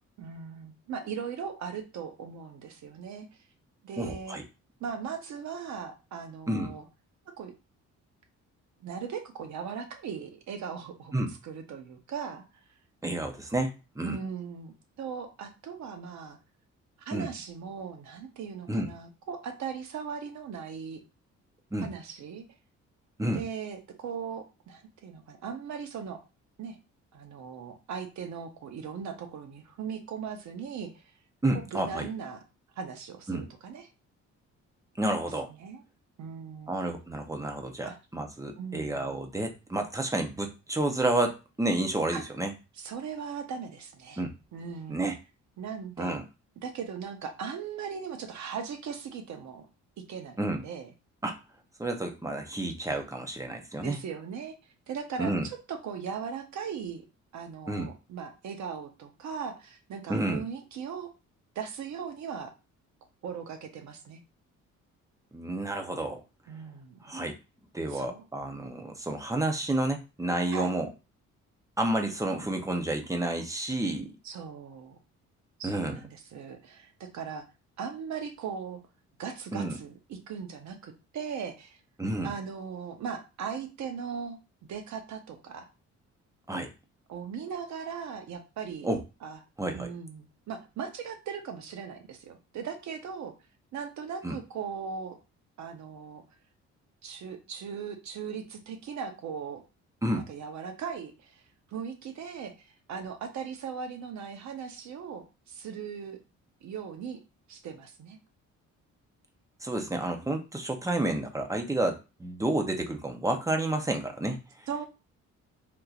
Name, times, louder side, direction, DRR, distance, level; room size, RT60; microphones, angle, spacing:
voice 1, 0.2-3.3 3.8-4.4 4.8-6.9 7.4-7.5 8.8-12.4 14.0-16.4 17.1-21.0 21.8-22.4 23.3-26.2 26.6-26.8 27.1-31.1 31.5-32.4 32.8-33.9 35.5-35.8 36.2-36.7 37.8-38.0 38.6-39.2 42.1-42.2 42.8-44.2 44.5-45.0 45.6-46.2 46.6-49.7 50.1-50.9 53.8-54.5 54.9-57.0 57.3-61.1 61.5-62.5 63.2-64.2 66.5-67.0 67.9-68.2 70.5-70.7 74.2-75.0 75.6-77.4 77.8-78.8 79.2-81.8 82.2-84.4 84.7-85.7 87.1-88.9 89.2-89.4 89.7-93.3 93.7-95.2 95.6-96.2 97.0-99.6 100.1-101.4 101.7-106.2 106.6-107.2 107.5-108.2 114.7-114.9, right 6 dB, 70° right, 5 dB, 0.9 m, -38 dB
voice 2, 4.0-4.4 6.5-6.7 11.1-11.3 13.0-14.2 17.1-17.3 18.7-18.9 21.7-21.9 23.2-23.4 31.4-32.1 33.3-33.4 35.0-35.5 36.7-42.5 44.2-44.3 44.9-45.1 46.0-46.2 50.4-50.6 51.2-51.4 51.8-54.0 55.2-55.5 57.7-57.9 60.1-60.4 65.3-66.2 67.0-67.4 67.7-70.9 71.8-74.1 75.6-76.0 79.5-79.8 82.0-82.3 86.5-86.7 88.8-89.0 89.6-89.9 94.2-94.4 100.0-100.2 109.6-114.7, right 1 dB, 10° right, 4 dB, 0.7 m, -30 dB
3.6 x 2.8 x 2.4 m, 0.29 s
cardioid pair, 90°, 30 cm